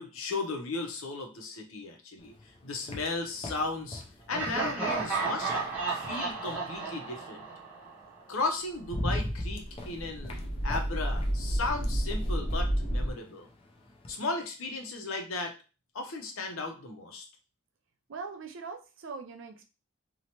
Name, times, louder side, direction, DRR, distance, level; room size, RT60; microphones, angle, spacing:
voice 1, 0.0-4.0 4.3-5.5 5.9-7.4 8.3-10.4 10.6-13.5 14.1-15.5 15.9-17.2, left 3 dB, 75° left, 4 dB, 0.6 m, -35 dB
sound 1, 2.2-6.8 8.0-8.1 8.5-14.2, left 1 dB, 25° left, 0.4 m, -40 dB
Laughter, 4.3-8.2, right 4 dB, 5° right, 0.7 m, -33 dB
sound 2, 9.3-13.1, equal, 50° left, 1.1 m, -31 dB
voice 2, 18.1-19.7, right 4 dB, 60° right, 5 dB, 0.4 m, -41 dB
2.8 x 2.1 x 2.8 m, 0.32 s
head